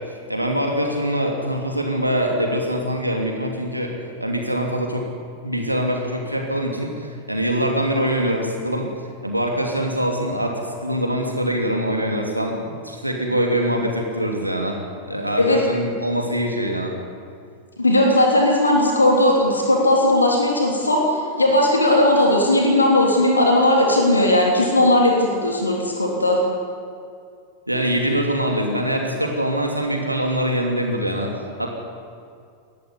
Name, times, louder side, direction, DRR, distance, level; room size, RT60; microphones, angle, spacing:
voice 1, 0.3-3.9 4.2-5.1 5.4-8.9 9.2-14.8 15.1-16.9 27.7-31.7, equal, 85° right, 1 dB, 2.8 m, -23 dB
voice 2, 17.8-26.4, left 1 dB, 80° left, 0 dB, 3.1 m, -17 dB
19.5 x 14.5 x 9.8 m, 2.3 s
figure-of-eight pair, 90°, 0 cm